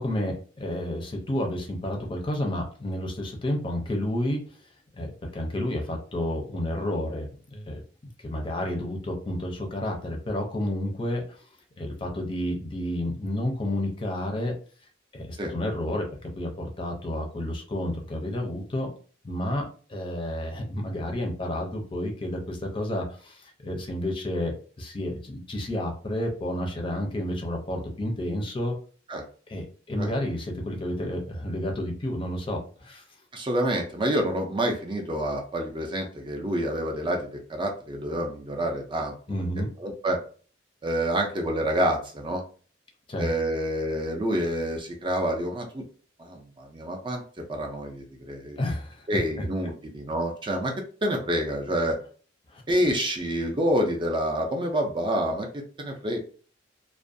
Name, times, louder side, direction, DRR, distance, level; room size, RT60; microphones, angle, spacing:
voice 1, 0.0-4.4 4.9-7.8 8.2-11.3 11.8-14.6 15.1-18.9 19.2-28.8 29.5-33.0 39.3-39.7 43.1-43.3 48.6-49.1 52.5-52.6, left 1 dB, 30° left, 1 dB, 0.5 m, -30 dB
voice 2, 33.3-39.2 39.8-40.2 40.8-42.4 43.2-45.8 46.2-48.6 49.1-50.7 51.0-52.0 52.7-56.2, equal, 25° right, 2 dB, 0.4 m, -28 dB
2.4 x 2.1 x 2.5 m, 0.41 s
head